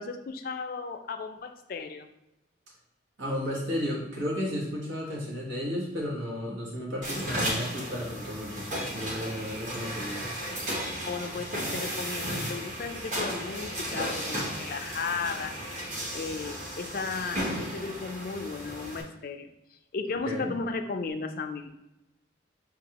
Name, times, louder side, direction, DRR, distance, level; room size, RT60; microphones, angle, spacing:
voice 1, 0.0-2.1 9.3-9.5 11.0-15.5 16.1-19.5 19.9-21.7, left 4 dB, 50° left, 6 dB, 0.4 m, -35 dB
voice 2, 3.2-10.3 20.2-20.5, equal, 85° right, -4 dB, 1.2 m, -33 dB
sound 1, 7.0-19.0, equal, 40° right, 0.9 m, -34 dB
6.0 x 2.3 x 2.9 m, 0.91 s
head